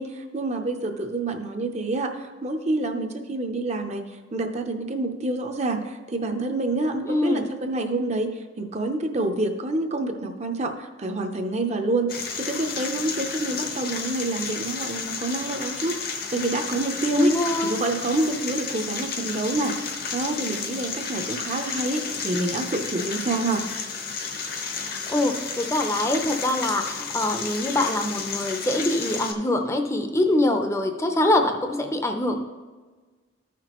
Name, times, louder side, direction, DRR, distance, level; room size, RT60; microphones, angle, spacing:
voice 1, 0.0-17.3 17.6-23.7, right 2 dB, 35° right, 5 dB, 0.6 m, -27 dB
voice 2, 7.0-7.5 17.1-17.8 24.8-32.4, left 1 dB, 15° left, 5 dB, 0.6 m, -24 dB
sound 1, 12.1-29.3, left 5 dB, 50° left, 0.8 m, -32 dB
14.0 x 5.9 x 3.0 m, 1.4 s
head